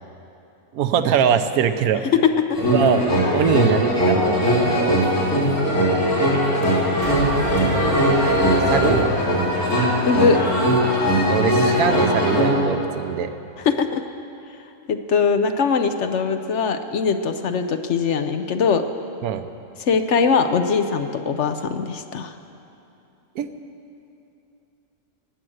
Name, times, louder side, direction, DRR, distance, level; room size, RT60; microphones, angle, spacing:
voice 1, 0.7-2.0 2.7-3.0 3.3-5.0 8.7-9.0 11.3-13.3 19.2-19.4 23.4-23.5, right 8 dB, 85° right, 10 dB, 1.2 m, -22 dB
sound 1, 2.5-12.5, equal, 85° left, 3.6 m, -20 dB
Brass instrument, 7.0-10.1, right 2 dB, 40° right, 0.4 m, -29 dB
voice 2, 10.1-10.4 13.6-14.0 14.9-18.8 19.8-22.3, left 5 dB, 60° left, 8 dB, 0.9 m, -21 dB
19.5 x 7.6 x 7.8 m, 2.8 s
omnidirectional pair, 1.5 m